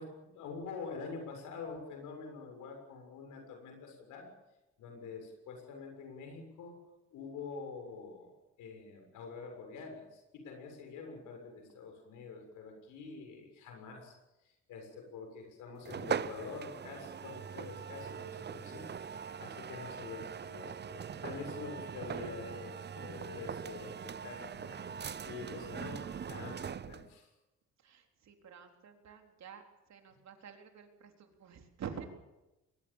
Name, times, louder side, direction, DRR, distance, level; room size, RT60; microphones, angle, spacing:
voice 1, 0.0-4.3 4.8-6.8 7.1-8.3 8.6-14.1 14.7-27.3, left 4 dB, 90° left, 3 dB, 6.9 m, -46 dB
sound 1, 15.8-27.1, right 7 dB, 35° right, 0.7 m, -41 dB
voice 2, 27.8-29.6 29.9-32.1, right 7 dB, 65° right, 4 dB, 3.7 m, -48 dB
22.5 x 20.0 x 7.2 m, 0.98 s
cardioid pair, 90°, 30 cm